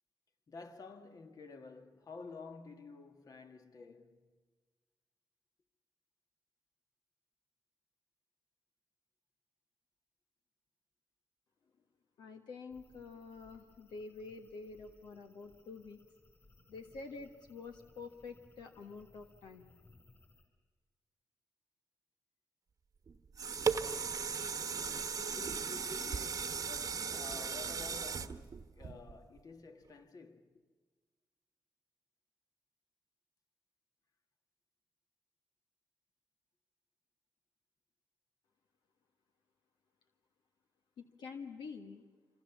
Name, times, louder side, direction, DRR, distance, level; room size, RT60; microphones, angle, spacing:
voice 1, 0.5-4.3 25.2-30.5, left 3 dB, 55° left, 1.9 m, -51 dB
voice 2, 12.2-16.0 16.7-19.7 41.0-42.0, left 4 dB, 90° left, 1.5 m, -48 dB
sound 1, 12.7-20.5, left 2 dB, 30° left, 7.3 m, -65 dB
sound 2, 23.1-29.4 29.9-30.0, right 5 dB, 55° right, 1.1 m, -37 dB
26.0 x 25.5 x 7.3 m
cardioid pair, 65°, 7 cm